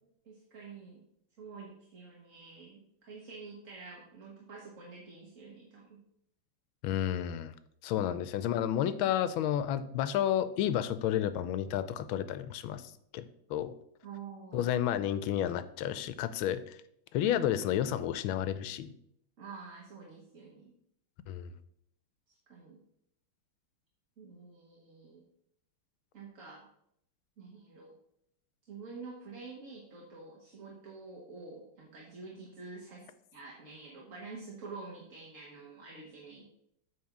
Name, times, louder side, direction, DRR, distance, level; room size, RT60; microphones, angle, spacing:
voice 1, 0.0-1.0 1.4-6.0 14.0-14.7 19.4-20.7 22.5-22.8 24.2-25.2 26.1-26.7 27.4-27.9 28.6-36.4, right 4 dB, 45° right, -2 dB, 1.5 m, -48 dB
voice 2, 6.8-7.5 7.8-12.8 13.1-13.7 14.5-16.8 17.1-18.9 21.3-21.5, left 10 dB, 85° left, 13 dB, 1.4 m, -31 dB
8.6 x 3.9 x 5.9 m, 0.72 s
omnidirectional pair, 2.2 m